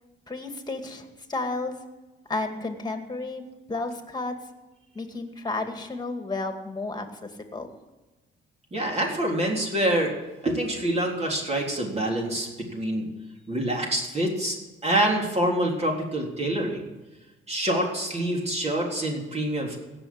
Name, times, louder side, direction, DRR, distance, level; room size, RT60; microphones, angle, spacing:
voice 1, 0.3-1.8 2.3-3.4 3.7-4.4 4.9-7.2 7.5-7.7, left 2 dB, 20° left, 6 dB, 2.2 m, -32 dB
voice 2, 8.7-10.2 10.4-13.1 13.5-14.6 14.8-16.9 17.5-19.8, right 1 dB, 35° right, 0 dB, 3.7 m, -26 dB
17.0 x 7.0 x 8.6 m, 1.1 s
cardioid pair, 90°, 20 cm